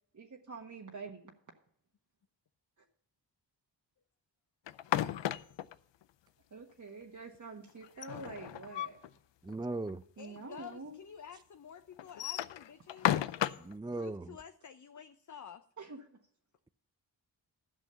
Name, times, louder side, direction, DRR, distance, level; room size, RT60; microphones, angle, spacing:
voice 1, 0.2-1.3 6.5-9.0 10.2-10.9 15.8-16.2, right 3 dB, 40° right, 0 dB, 1.5 m, -46 dB
sound 1, 4.7-5.7 7.8-9.1 9.5-9.6 9.9-10.0 10.7-10.8 12.0-13.7, left 12 dB, 80° left, 0.6 m, -33 dB
voice 2, 9.4-10.0 13.6-14.4, right 2 dB, 10° right, 13 dB, 0.4 m, -38 dB
voice 3, 10.2-13.2 14.0-15.6, left 8 dB, 45° left, 9 dB, 0.7 m, -50 dB
12.0 x 6.3 x 6.8 m, 0.63 s
cardioid pair, 55°, 44 cm